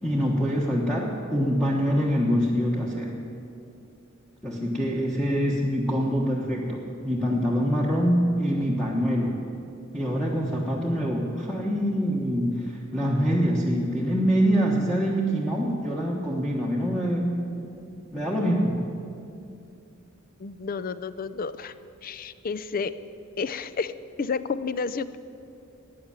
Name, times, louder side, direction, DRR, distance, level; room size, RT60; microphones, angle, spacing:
voice 1, 0.0-3.1 4.4-9.4 9.9-17.5 18.1-18.8, equal, 5° left, -4 dB, 1.3 m, -25 dB
voice 2, 20.4-21.7 22.0-22.9 23.4-23.9 24.2-25.2, left 5 dB, 45° left, 14 dB, 0.5 m, -30 dB
14.0 x 9.5 x 8.9 m, 2.6 s
head